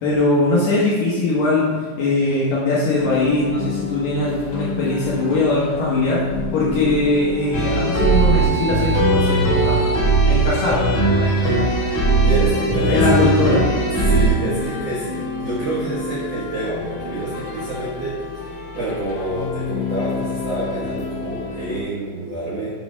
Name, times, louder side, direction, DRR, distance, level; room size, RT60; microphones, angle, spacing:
voice 1, 0.0-6.2 6.5-9.9 10.3-10.8 11.2-11.8 12.9-13.6, left 2 dB, 70° left, -6 dB, 2.1 m, -20 dB
sound 1, 3.0-21.8, left 4 dB, 90° left, 3.0 m, -31 dB
sound 2, 7.5-14.3, right 3 dB, 55° left, 1.7 m, -18 dB
voice 2, 12.2-13.3 13.7-13.8 14.0-18.1 18.4-22.7, right 2 dB, 80° right, -7 dB, 1.4 m, -27 dB
7.1 x 3.9 x 5.1 m, 1.5 s
omnidirectional pair, 5.0 m